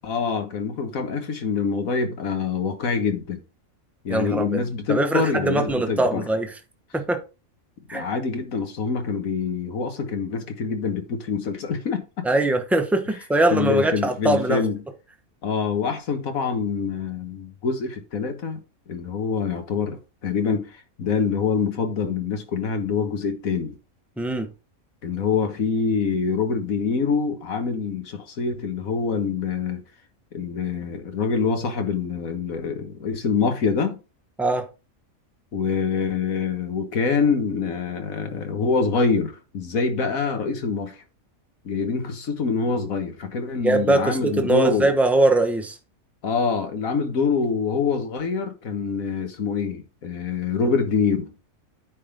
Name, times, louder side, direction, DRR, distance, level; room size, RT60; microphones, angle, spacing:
voice 1, 0.0-3.4 4.0-6.3 7.9-12.0 13.5-14.8 15.4-18.6 18.9-20.0 20.2-20.7 21.0-23.8 25.0-29.8 30.3-34.0 35.5-41.0 41.7-44.9 46.2-51.3, left 5 dB, 80° left, 1.8 m, -25 dB
voice 2, 4.1-4.6 4.9-6.5 6.9-7.2 7.9-8.0 12.2-14.6 24.2-24.5 34.4-34.7 43.6-45.8, right 2 dB, ahead, 0.8 m, -21 dB
9.3 x 3.8 x 5.1 m
omnidirectional pair, 1.4 m